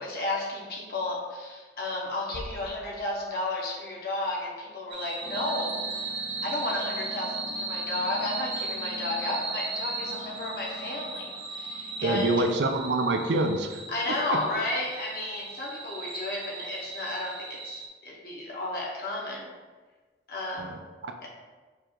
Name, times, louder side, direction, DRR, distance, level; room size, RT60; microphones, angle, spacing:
voice 1, 0.0-6.1 6.4-12.4 13.9-19.5 20.3-20.8 21.2-21.3, left 2 dB, 55° left, -3 dB, 1.0 m, -33 dB
sound 1, 2.3-4.1, left 1 dB, 90° left, 0.5 m, -45 dB
sound 2, 4.9-17.9, right 3 dB, 30° right, 0.5 m, -37 dB
sound 3, 5.2-13.6, left 3 dB, 10° left, 0.7 m, -46 dB
voice 2, 12.0-13.8 14.3-14.4 20.6-21.3, right 2 dB, 85° right, 5 dB, 0.5 m, -27 dB
4.9 x 2.4 x 4.5 m, 1.3 s
head